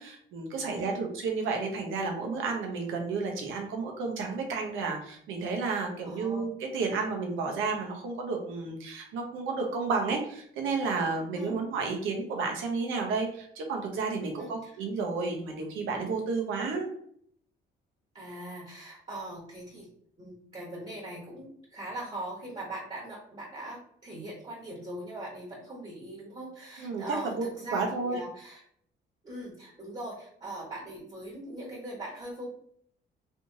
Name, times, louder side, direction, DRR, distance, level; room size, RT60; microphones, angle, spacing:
voice 1, 0.0-16.9 26.8-27.5 27.7-28.2, right 4 dB, 90° right, 2 dB, 0.9 m, -31 dB
voice 2, 6.0-6.4 11.3-11.5 14.4-14.7 16.5-16.7 18.1-19.9 20.2-28.6 29.2-32.5, right 1 dB, 30° right, -4 dB, 1.4 m, -41 dB
3.4 x 2.9 x 2.8 m, 0.64 s
cardioid pair, 90°, 20 cm